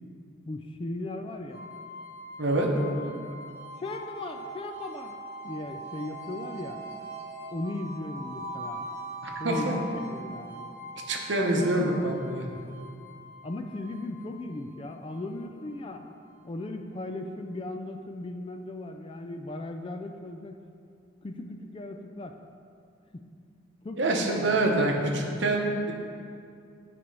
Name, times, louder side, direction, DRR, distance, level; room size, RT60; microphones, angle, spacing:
voice 1, 0.5-1.7 2.5-3.4 3.8-5.2 5.4-6.8 7.5-8.9 9.4-10.7 11.5-12.0 13.4-16.1 16.4-20.6 21.2-22.4 23.1-23.2 23.8-24.8, left 2 dB, 25° left, 6 dB, 0.3 m, -37 dB
sound 1, 1.5-16.4, right 1 dB, 50° left, 0.9 m, -42 dB
voice 2, 11.1-12.4 24.0-25.9, right 2 dB, 60° right, 1 dB, 0.9 m, -26 dB
9.7 x 3.4 x 5.3 m, 2.4 s
head